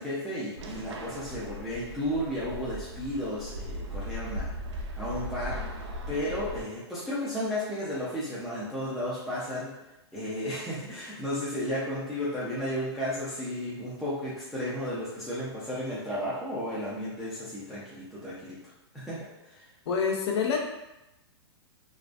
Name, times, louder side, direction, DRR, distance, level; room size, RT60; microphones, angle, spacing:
voice 1, 0.0-4.5 5.0-9.7 10.1-18.6 18.9-19.6, equal, ahead, -10 dB, 0.3 m, -33 dB
sound 1, 0.6-6.6, equal, 85° right, 0.5 m, -38 dB
voice 2, 19.9-20.6, left 6 dB, 70° left, 1 dB, 0.6 m, -26 dB
2.3 x 2.2 x 2.4 m, 0.93 s
hypercardioid pair, 150°, 14 cm